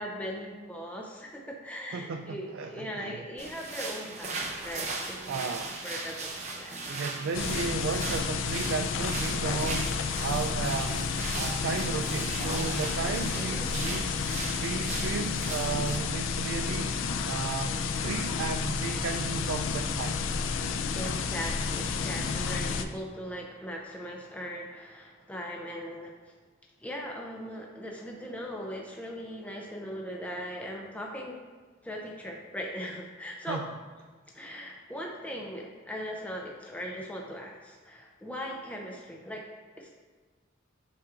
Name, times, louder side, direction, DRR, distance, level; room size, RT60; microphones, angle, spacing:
voice 1, 0.0-4.4 4.6-5.5 5.8-6.8 13.3-13.7 20.9-26.1 26.8-31.4 31.8-33.6 34.3-39.4 39.8-39.9, equal, 5° left, -1 dB, 0.5 m, -39 dB
voice 2, 1.9-3.2 5.3-5.8 6.9-14.2 14.6-17.0 17.3-20.2 33.5-33.7, right 5 dB, 80° right, 5 dB, 0.3 m, -34 dB
sound 1, 3.4-16.0, right 3 dB, 35° right, 0.7 m, -38 dB
sound 2, 7.3-22.9, left 5 dB, 90° left, 0.4 m, -31 dB
7.0 x 6.1 x 2.5 m, 1.4 s
head